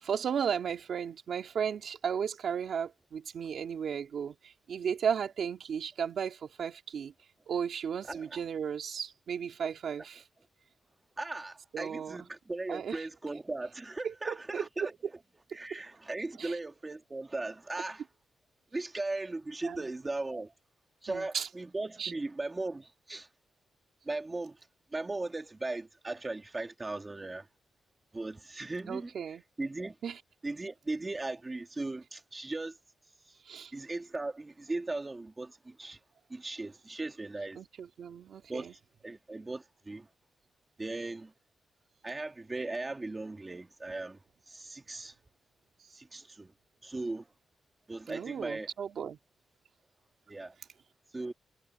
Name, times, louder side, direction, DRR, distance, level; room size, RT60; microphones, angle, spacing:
voice 1, 0.0-7.1 7.5-10.2 11.7-12.2 12.7-13.0 14.0-14.6 16.4-16.5 19.6-19.9 21.1-21.5 22.0-22.1 28.9-29.4 30.0-30.2 33.5-33.7 37.6-38.7 48.1-49.2, right 7 dB, 55° right, 2.5 m, -35 dB
voice 2, 8.1-8.4 11.2-14.9 15.5-18.0 18.7-20.5 21.0-23.3 24.1-24.6 24.9-27.5 28.1-29.1 29.6-30.0 30.4-32.8 33.7-36.0 36.3-37.6 38.5-38.7 39.0-40.1 40.8-41.3 42.0-44.2 44.5-45.1 45.9-46.5 46.8-47.3 47.9-48.7 50.3-50.6 51.1-51.3, right 2 dB, 15° right, 2.0 m, -38 dB
wide cardioid pair, 180°, 0 cm